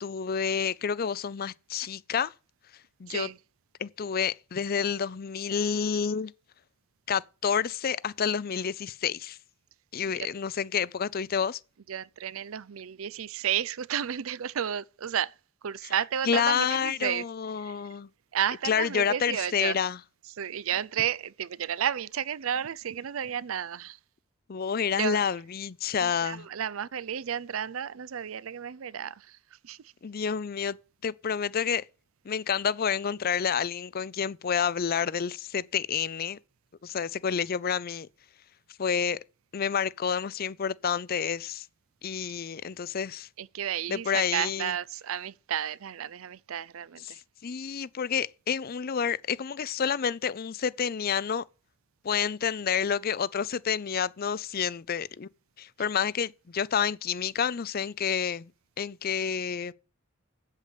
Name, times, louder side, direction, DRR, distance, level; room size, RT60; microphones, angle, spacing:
voice 1, 0.0-2.3 3.0-3.3 3.8-6.3 7.1-9.4 9.9-11.6 16.3-18.1 18.6-20.0 24.5-26.5 30.0-30.8 31.0-31.8 32.2-36.4 36.8-38.1 38.8-39.2 39.5-41.7 42.0-43.3 43.9-44.7 47.1-51.4 52.0-55.3 55.6-58.5 58.8-59.7, left 7 dB, 45° left, 0.5 m, -29 dB
voice 2, 3.1-3.4 11.9-15.3 15.6-17.2 17.6-17.8 18.3-19.8 20.4-24.0 25.0-25.2 26.0-29.9 43.4-47.2, right 9 dB, 75° right, 0.5 m, -32 dB
8.2 x 8.1 x 8.5 m
head